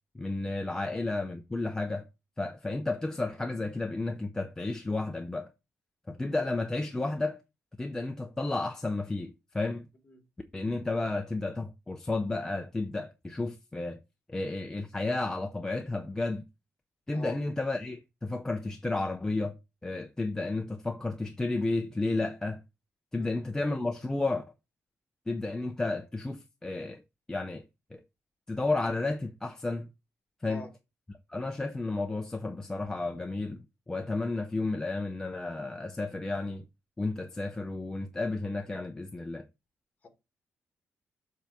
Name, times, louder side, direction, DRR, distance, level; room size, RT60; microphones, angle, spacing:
voice 1, 0.1-2.1 2.4-5.5 6.1-7.4 7.8-9.9 10.5-14.0 14.3-16.4 17.1-19.6 19.8-22.6 23.1-24.4 25.3-27.0 27.3-27.6 27.9-28.0 28.5-29.9 30.4-30.7 31.1-36.6 37.0-39.5, left 2 dB, 10° left, 0.5 m, -32 dB
voice 2, 0.8-1.0 10.1-10.2 17.1-17.4 23.2-23.4 30.4-30.7 40.0-40.1, left 2 dB, 30° left, 1.6 m, -44 dB
7.4 x 3.4 x 5.2 m
wide cardioid pair, 165°, 5 cm